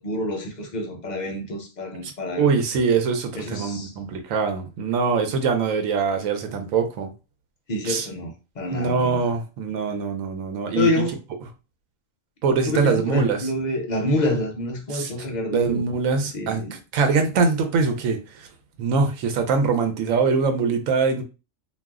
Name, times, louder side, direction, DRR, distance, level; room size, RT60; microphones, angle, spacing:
voice 1, 0.0-2.5 3.3-3.9 7.7-9.3 10.8-11.2 12.7-15.8 16.3-16.7, left 1 dB, 50° left, 0.6 m, -27 dB
voice 2, 2.4-7.1 7.8-8.1 8.7-10.9 12.4-13.5 14.9-15.1 15.5-18.5 18.8-21.2, right 5 dB, 90° right, 1.0 m, -23 dB
2.4 x 2.1 x 3.5 m
omnidirectional pair, 1.3 m